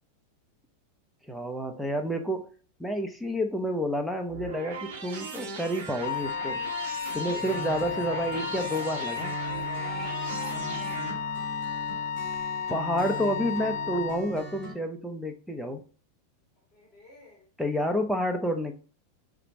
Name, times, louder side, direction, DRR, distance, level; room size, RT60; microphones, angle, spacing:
voice 1, 1.3-2.5 2.8-6.6 7.1-9.3 12.7-15.8 17.6-18.7, equal, ahead, 0.5 m, -29 dB
sound 1, 4.3-11.1, right 4 dB, 65° right, 1.2 m, -39 dB
Wind instrument woodwind instrument, 6.0-14.2, left 8 dB, 60° left, 0.4 m, -33 dB
voice 2, 7.1-11.3 16.7-17.5, left 1 dB, 20° left, 2.0 m, -49 dB
sound 2, 7.4-14.7, right 1 dB, 20° right, 2.1 m, -41 dB
6.6 x 2.6 x 3.0 m
supercardioid pair, 170°, 0 cm